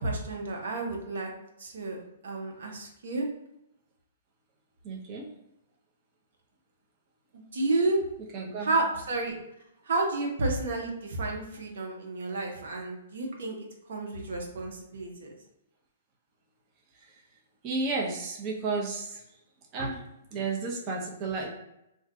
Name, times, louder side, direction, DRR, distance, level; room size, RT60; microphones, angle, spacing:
voice 1, 0.0-1.3 1.6-2.0 2.2-3.3 7.3-8.0 8.6-9.4 9.8-13.6 13.9-15.3, right 2 dB, 75° right, 1 dB, 0.7 m, -31 dB
voice 2, 4.8-5.3 8.3-8.8 16.9-17.2 17.6-19.2 19.7-20.0 20.3-21.5, right 3 dB, 30° right, -2 dB, 0.6 m, -32 dB
2.5 x 2.2 x 3.6 m, 0.84 s
hypercardioid pair, 145°, 0 cm